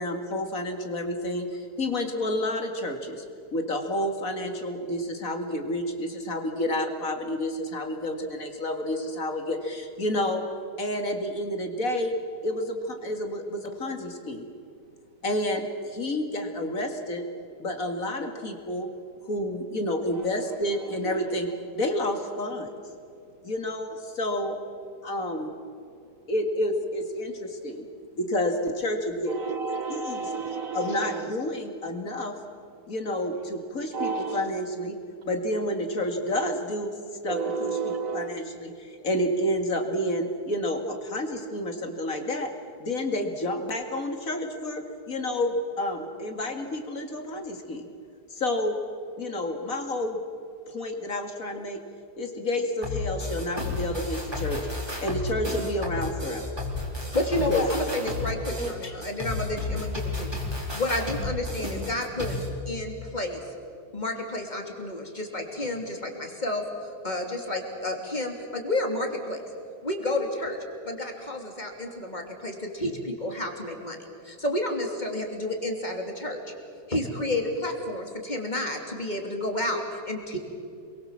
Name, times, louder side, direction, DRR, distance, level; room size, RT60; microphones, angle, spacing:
voice 1, 0.0-3.2 3.5-10.4 10.8-12.2 12.4-14.5 15.2-17.2 17.6-18.9 19.3-21.5 21.8-22.7 23.4-24.6 25.0-25.5 26.3-27.8 28.2-29.4 29.9-30.2 30.7-32.3 32.9-35.0 35.3-36.9 37.2-37.7 38.1-42.5 42.8-47.9 48.3-48.8 49.2-50.2 50.7-51.8 52.2-54.7 55.0-56.5 57.5-57.6 58.8-58.9, left 1 dB, 55° left, 4 dB, 2.5 m, -29 dB
voice 2, 20.1-21.4 23.0-23.1 29.3-31.4 33.9-34.5 37.2-38.5 58.6-58.8, right 4 dB, 60° right, 10 dB, 1.3 m, -32 dB
sound 1, 52.8-62.5, left 2 dB, 15° right, 4.1 m, -32 dB
voice 3, 57.1-60.3 60.7-62.3 62.7-63.4 63.9-69.4 69.8-70.6 70.8-74.0 74.2-76.4 76.9-80.4, left 1 dB, 25° left, 2 dB, 3.2 m, -30 dB
27.5 x 22.5 x 7.5 m, 2.4 s
omnidirectional pair, 1.7 m